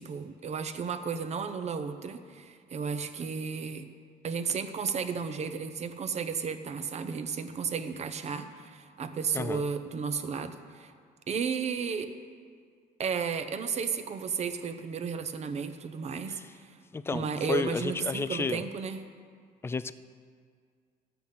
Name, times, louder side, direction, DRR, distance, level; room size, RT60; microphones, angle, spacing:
voice 1, 0.0-3.9 4.2-10.9 11.3-12.1 13.0-16.8 17.1-19.0, right 6 dB, 40° right, 9 dB, 0.8 m, -33 dB
voice 2, 16.9-18.7 19.6-19.9, left 4 dB, 15° left, 14 dB, 0.3 m, -32 dB
12.5 x 9.1 x 5.5 m, 2.1 s
cardioid pair, 110°, 17 cm